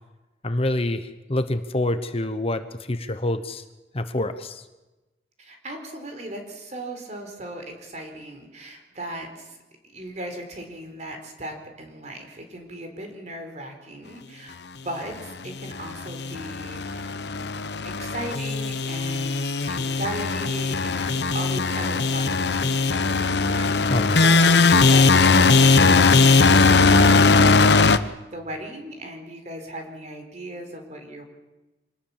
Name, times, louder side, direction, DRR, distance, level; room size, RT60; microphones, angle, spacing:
voice 1, 0.4-3.6 3.9-4.6 23.9-24.3, left 1 dB, 35° left, 10 dB, 1.0 m, -26 dB
voice 2, 5.4-9.6 9.9-14.5 14.8-17.2 17.8-31.2, right 1 dB, 40° right, 4 dB, 4.3 m, -37 dB
sound 1, 15.6-28.0, left 4 dB, 75° left, 0.9 m, -19 dB
25.5 x 19.5 x 7.4 m, 1.1 s
head